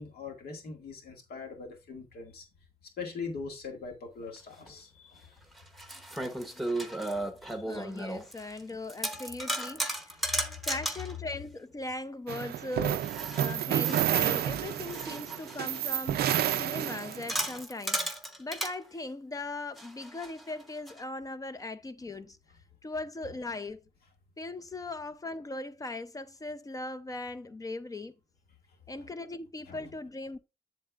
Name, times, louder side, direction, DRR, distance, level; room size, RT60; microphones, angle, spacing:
voice 1, 0.0-2.4 3.0-5.4 6.2-6.3 7.5-7.6 10.3-10.4 29.7-29.8, left 4 dB, 75° left, 2.0 m, -41 dB
sound 1, 4.7-4.8 5.5-8.6 8.9-11.2 13.0-15.9 16.4-18.8 19.8-21.0, right 1 dB, ahead, 1.0 m, -35 dB
voice 2, 7.7-10.2 10.6-13.1 13.3-18.0 18.4-22.4 22.8-23.8 24.4-28.2 28.9-30.4, left 2 dB, 20° left, 0.5 m, -39 dB
sound 2, 12.3-17.4, right 11 dB, 90° right, 0.4 m, -30 dB
7.7 x 7.2 x 2.4 m
cardioid pair, 115°, 16 cm